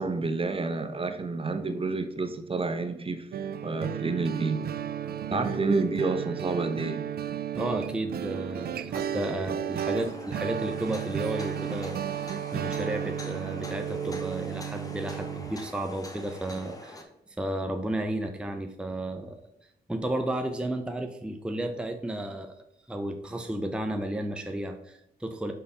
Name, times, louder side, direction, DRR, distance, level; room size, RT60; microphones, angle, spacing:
voice 1, 0.0-3.3 3.6-4.6 5.3-7.0, right 3 dB, 30° right, 7 dB, 0.8 m, -29 dB
sound 1, 3.3-15.5, right 9 dB, 65° right, 0.4 m, -33 dB
voice 2, 7.5-17.1 17.4-19.4 19.9-22.6 22.9-25.5, right 1 dB, 5° right, 5 dB, 0.6 m, -33 dB
sound 2, 9.9-17.0, left 1 dB, 20° left, 1.1 m, -44 dB
5.5 x 5.4 x 4.2 m, 0.84 s
cardioid pair, 80°, 18 cm